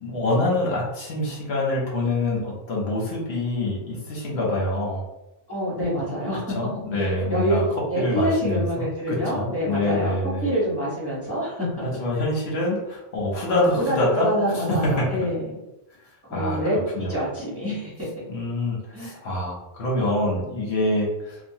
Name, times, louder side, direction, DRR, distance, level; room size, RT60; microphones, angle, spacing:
voice 1, 0.0-5.0 6.5-7.6 8.0-10.5 11.8-14.3 14.5-14.6 16.3-16.6 16.9-17.1 18.3-21.4, left 1 dB, 65° left, -4 dB, 1.0 m, -25 dB
voice 2, 5.5-6.6 7.0-10.1 10.4-11.7 13.5-15.5 16.2-18.1 18.9-19.2, equal, 15° right, -8 dB, 0.9 m, -26 dB
2.8 x 2.2 x 2.8 m, 0.94 s
omnidirectional pair, 1.2 m